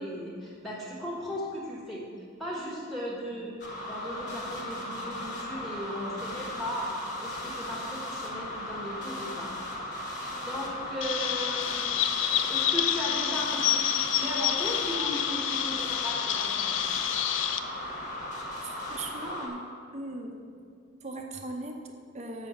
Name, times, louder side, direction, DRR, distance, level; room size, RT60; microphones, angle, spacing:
voice 1, 0.0-2.1 2.4-3.6 3.9-9.5 9.8-10.1 10.4-16.7, equal, ahead, -6 dB, 1.4 m, -37 dB
sound 1, 3.6-19.5, left 1 dB, 40° left, 1.6 m, -37 dB
Chirp tweet, 11.0-17.6, left 10 dB, 80° left, 0.5 m, -28 dB
voice 2, 18.6-19.7 19.9-20.4 21.0-22.5, right 2 dB, 35° right, 3 dB, 0.8 m, -39 dB
7.1 x 6.1 x 7.1 m, 2.2 s
head